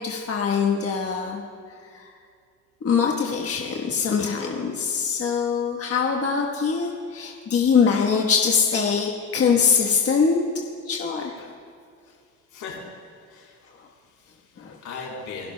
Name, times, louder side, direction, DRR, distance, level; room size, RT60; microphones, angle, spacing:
voice 1, 0.0-1.4 1.9-2.1 2.8-10.4 10.9-11.5 14.6-14.8, left 6 dB, 50° left, -1 dB, 1.3 m, -23 dB
voice 2, 12.5-12.8 13.2-15.5, left 4 dB, 85° left, -3 dB, 3.8 m, -39 dB
29.0 x 12.0 x 2.2 m, 2.3 s
cardioid pair, 90°, 30 cm